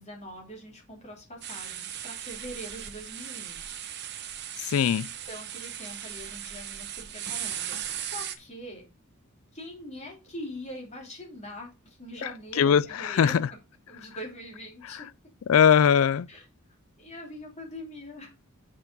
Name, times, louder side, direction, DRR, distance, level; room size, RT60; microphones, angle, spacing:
voice 1, 0.0-3.8 4.1-4.7 5.2-8.9 9.5-13.4 13.9-15.1 16.3-16.5 17.0-18.3, equal, 30° left, 3.2 m, -43 dB
sound 1, 1.4-8.3, right 10 dB, 50° right, 1.0 m, -37 dB
voice 2, 4.7-5.1 12.6-13.4 15.5-16.3, left 7 dB, 70° left, 0.4 m, -20 dB
7.1 x 5.7 x 5.4 m
head